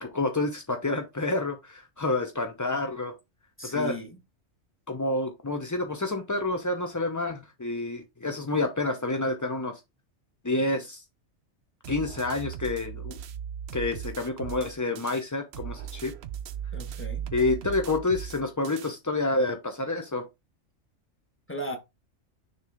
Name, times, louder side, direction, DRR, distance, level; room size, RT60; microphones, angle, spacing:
voice 1, 0.0-3.1 3.6-4.0 4.9-9.8 10.4-11.0 11.9-13.2 13.7-16.1 17.3-20.2, left 2 dB, 25° left, 0.4 m, -28 dB
voice 2, 3.6-4.1 16.7-17.2 21.5-21.8, equal, 10° left, 1.4 m, -36 dB
sound 1, 11.8-15.2 15.5-18.9, right 9 dB, 60° right, 0.8 m, -38 dB
6.7 x 3.4 x 4.9 m
omnidirectional pair, 1.4 m